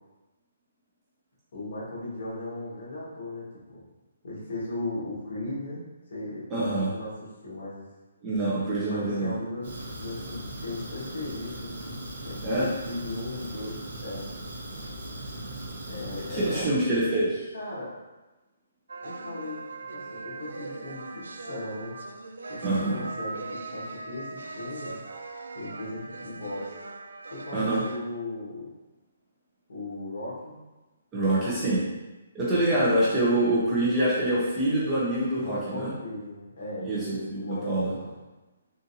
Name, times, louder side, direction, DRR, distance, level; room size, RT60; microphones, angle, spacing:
voice 1, 1.5-3.8 4.2-6.5 6.9-7.9 8.9-14.3 15.9-16.7 17.5-18.0 19.0-19.6 19.9-22.0 22.5-25.0 25.5-26.8 27.3-28.7 29.7-30.6 31.3-31.6 32.7-32.9 35.1-38.2, left 2 dB, 55° left, -7 dB, 1.5 m, -37 dB
voice 2, 6.5-6.9 8.2-9.3 12.4-12.7 16.3-17.5 22.6-23.0 27.5-27.8 31.1-31.8 32.3-35.9 36.8-37.0 37.3-37.9, right 1 dB, 10° right, -8 dB, 0.6 m, -25 dB
Fire, 9.6-16.6, right 1 dB, 50° right, 0.8 m, -39 dB
sound 1, 18.9-28.0, right 3 dB, 85° right, 0.3 m, -40 dB
3.7 x 2.6 x 2.7 m, 1.1 s
hypercardioid pair, 170°, 0 cm